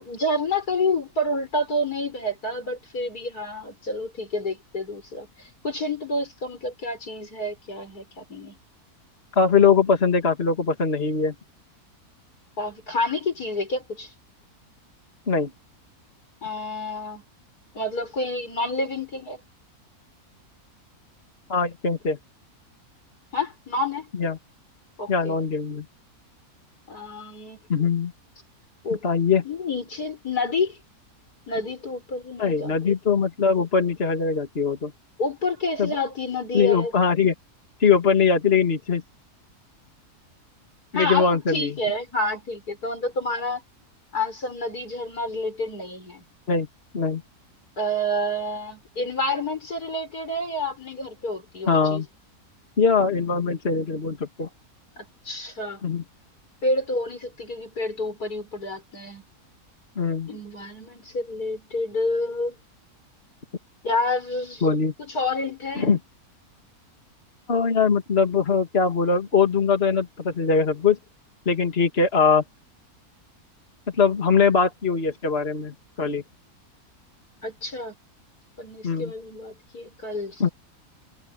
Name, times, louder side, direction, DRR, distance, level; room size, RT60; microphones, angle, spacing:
voice 1, 0.0-8.6 12.6-14.1 16.4-17.2 17.7-19.4 23.3-24.1 25.0-25.4 26.9-27.6 28.8-29.0 29.4-30.8 31.5-33.0 35.2-36.9 40.9-43.6 44.1-46.2 47.8-52.0 55.0-55.8 56.6-59.2 60.3-62.6 63.8-64.7 65.0-65.9 77.4-77.9 78.6-80.4, left 2 dB, 80° left, 6.5 m, -29 dB
voice 2, 9.4-11.3 15.3-15.5 21.5-22.2 24.1-24.4 25.1-25.8 27.7-28.1 29.0-29.4 32.4-34.9 35.8-35.9 36.5-37.3 37.8-39.0 40.9-41.8 46.5-46.7 46.9-47.2 51.7-52.1 52.8-54.5 55.8-56.0 60.0-60.3 64.6-64.9 65.8-66.0 67.5-71.0 71.5-72.4 73.9-76.2 78.8-79.1 80.4-80.5, left 5 dB, 40° left, 2.4 m, -21 dB
omnidirectional pair, 1.6 m